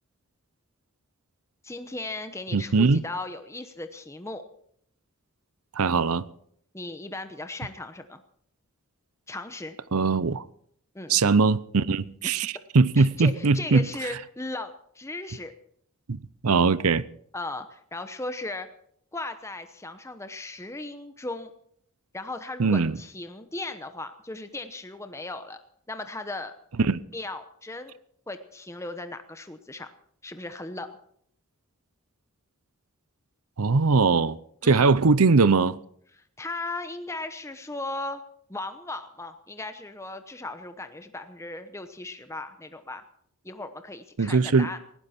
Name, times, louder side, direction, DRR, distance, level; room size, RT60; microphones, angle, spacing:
voice 1, 1.6-4.4 6.7-8.2 9.3-9.8 10.9-11.2 13.0-15.5 17.3-18.7 19.1-21.5 22.1-25.6 25.9-26.5 27.1-27.9 28.3-29.9 30.2-30.9 34.6-34.9 36.4-38.2 38.5-43.0 43.4-44.8, left 2 dB, 15° left, 0.9 m, -37 dB
voice 2, 2.5-3.0 5.7-6.3 9.9-10.4 11.1-13.9 16.1-17.0 22.6-23.0 26.8-27.0 33.6-35.8 44.2-44.7, right 4 dB, 80° right, 0.7 m, -21 dB
19.0 x 15.5 x 4.4 m
head